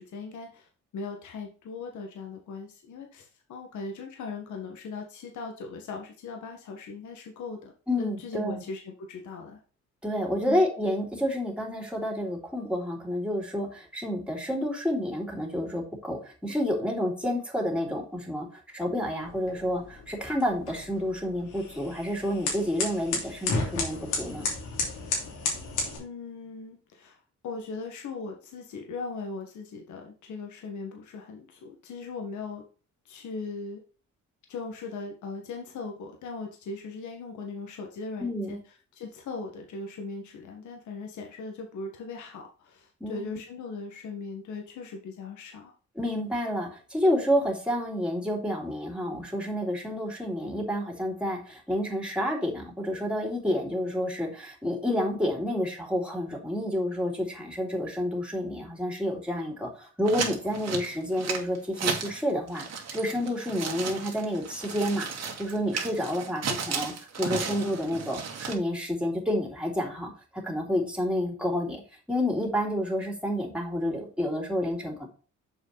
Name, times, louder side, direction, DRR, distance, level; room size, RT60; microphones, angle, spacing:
voice 1, 0.0-9.6 10.4-10.6 26.0-27.2 27.4-32.6 33.1-33.8 34.5-38.6 38.9-45.7, left 4 dB, 75° left, 2 dB, 1.7 m, -39 dB
voice 2, 7.9-8.6 10.0-24.5 38.2-38.6 43.0-43.4 45.9-71.8 72.1-75.1, equal, 5° right, 1 dB, 3.3 m, -29 dB
sound 1, 19.2-26.0, left 3 dB, 90° left, 3.0 m, -33 dB
sound 2, 60.1-62.2 62.5-68.6, right 6 dB, 60° right, 2.0 m, -34 dB
7.2 x 5.2 x 4.2 m, 0.36 s
cardioid pair, 90°, 30 cm